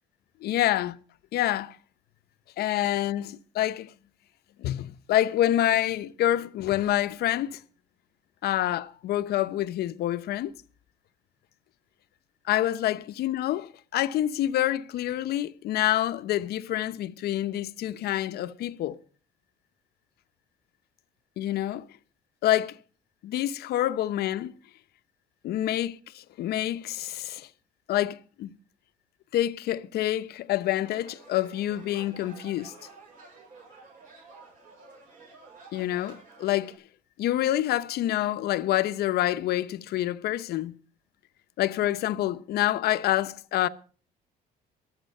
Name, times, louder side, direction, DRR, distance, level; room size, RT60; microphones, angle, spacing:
voice 1, 0.4-1.0 1.3-1.8 2.6-3.9 4.6-7.6 8.4-10.5 12.4-19.0 21.4-21.8 22.4-22.8 23.2-24.5 25.4-27.5 27.9-28.5 29.3-32.7 35.7-36.7 37.2-40.7 41.6-43.7, left 13 dB, 70° left, 0.8 m, -27 dB
sound 1, 30.8-36.8, right 4 dB, 50° right, 7.9 m, -51 dB
21.5 x 7.5 x 5.4 m
cardioid pair, 110°, 17 cm